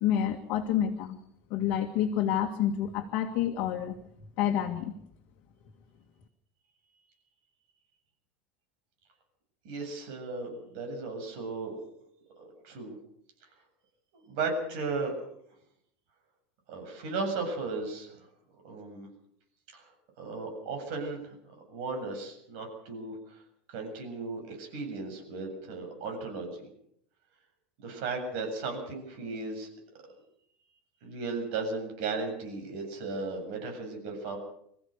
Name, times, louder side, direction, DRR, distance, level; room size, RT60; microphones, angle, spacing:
voice 1, 0.0-1.2 1.5-4.0 4.4-4.9, left 10 dB, 40° left, 4 dB, 1.9 m, -28 dB
voice 2, 9.6-11.8 12.4-12.9 14.1-15.1 16.7-18.3 18.6-19.1 19.7-19.9 20.2-21.4 21.7-23.4 23.7-26.7 27.8-29.7 31.0-34.4, right 3 dB, 55° right, 3 dB, 7.6 m, -36 dB
27.0 x 15.0 x 6.7 m, 0.71 s
supercardioid pair, 175°, 6 cm